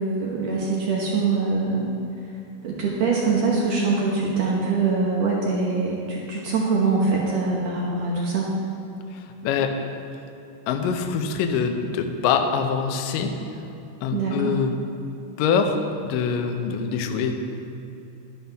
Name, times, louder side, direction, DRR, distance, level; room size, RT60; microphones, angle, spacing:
voice 1, 0.0-1.9 2.6-8.5 14.1-14.5, right 4 dB, 80° right, -3 dB, 1.5 m, -23 dB
voice 2, 9.1-9.7 10.7-13.3 14.0-14.7 15.4-15.8 16.0-17.3, left 6 dB, 85° left, 5 dB, 1.9 m, -24 dB
12.5 x 11.0 x 3.5 m, 2.9 s
omnidirectional pair, 4.9 m